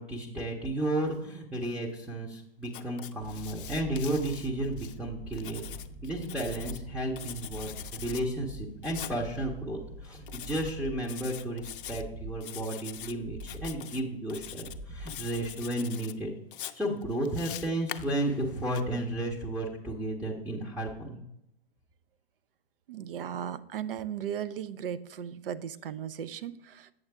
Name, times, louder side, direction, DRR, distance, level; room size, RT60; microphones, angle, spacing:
voice 1, 0.0-5.6 6.0-16.3 16.7-21.2, right 1 dB, 5° right, -3 dB, 0.8 m, -33 dB
Writing, 2.7-5.0 5.3-6.8 7.2-8.2 8.8-9.2 10.3-10.7 11.0-12.0 12.4-13.1 13.4-14.0 14.3-14.8 15.1-16.1 16.5-18.8, left 11 dB, 55° left, 0.5 m, -43 dB
sound 1, 3.2-15.7, equal, 35° right, 1.1 m, -45 dB
voice 2, 22.9-26.9, right 9 dB, 60° right, 16 dB, 0.6 m, -36 dB
7.9 x 7.2 x 3.5 m, 0.81 s
figure-of-eight pair, 115°, 31 cm